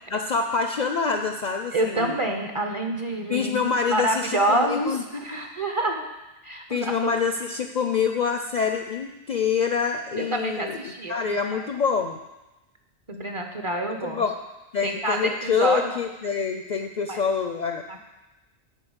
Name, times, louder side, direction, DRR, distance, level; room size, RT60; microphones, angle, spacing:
voice 1, 0.1-2.1 3.3-5.0 6.7-12.2 14.0-14.4 14.7-17.8, left 6 dB, 55° left, 5 dB, 0.5 m, -26 dB
voice 2, 1.7-6.0 6.4-6.9 10.2-11.7 13.1-14.2 14.8-16.0 17.1-17.2 17.9-18.0, right 1 dB, 30° right, 3 dB, 0.7 m, -27 dB
10.0 x 3.7 x 7.2 m, 1.0 s
omnidirectional pair, 1.1 m